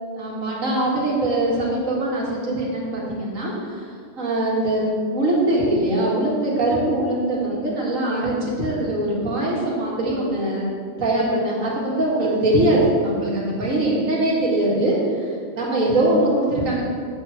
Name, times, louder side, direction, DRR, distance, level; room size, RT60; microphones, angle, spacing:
voice 1, 0.2-3.8 4.2-10.7 11.0-16.8, right 1 dB, 80° right, -5 dB, 2.3 m, -22 dB
8.0 x 4.7 x 7.0 m, 2.1 s
omnidirectional pair, 1.4 m